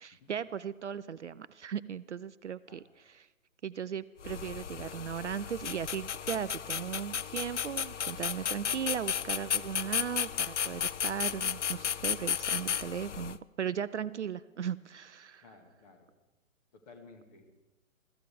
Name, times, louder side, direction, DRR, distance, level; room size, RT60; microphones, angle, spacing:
voice 1, 0.0-3.3 3.6-15.4, right 8 dB, 60° right, 16 dB, 0.5 m, -37 dB
sound 1, 4.2-13.4, left 8 dB, 60° left, 0.5 m, -34 dB
voice 2, 15.4-16.1 16.7-17.5, left 3 dB, 30° left, 4 dB, 1.9 m, -55 dB
22.5 x 14.0 x 3.5 m, 1.1 s
figure-of-eight pair, 130°, 41 cm